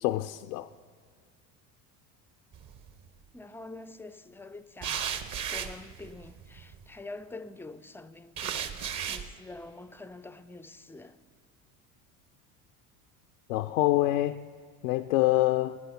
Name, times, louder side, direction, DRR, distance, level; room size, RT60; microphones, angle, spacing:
voice 1, 0.0-0.7 13.5-14.4 14.8-15.8, left 16 dB, 75° left, 0.6 m, -26 dB
sound 1, 2.5-3.1 4.8-6.8 8.4-9.3, right 8 dB, 45° right, 1.1 m, -35 dB
voice 2, 3.3-5.1 5.5-11.2, left 2 dB, 5° left, 0.4 m, -46 dB
17.0 x 9.6 x 5.9 m
hypercardioid pair, 80°, 43 cm